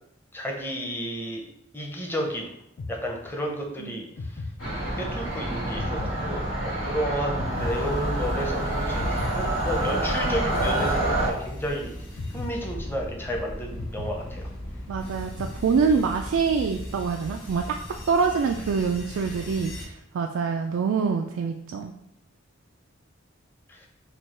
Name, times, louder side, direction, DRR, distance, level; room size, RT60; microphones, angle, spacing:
voice 1, 0.3-1.4 1.7-2.5 2.9-4.1 4.3-11.9 12.3-14.5 23.7-23.9, equal, 10° left, 0 dB, 0.7 m, -32 dB
sound 1, 2.8-3.6 4.2-5.2 5.8-6.9 7.4-8.6 9.0-10.2 10.6-11.6 12.2-13.3 13.8-15.0 15.4-16.2, left 3 dB, 50° left, 0.4 m, -38 dB
sound 2, 4.6-11.3, right 1 dB, 90° left, 1.5 m, -27 dB
sound 3, 7.4-19.9, left 1 dB, 65° left, 1.2 m, -38 dB
voice 2, 14.9-17.8 18.1-19.7 20.1-21.9, right 5 dB, 85° right, 3 dB, 0.3 m, -25 dB
4.4 x 2.3 x 4.4 m, 0.78 s
head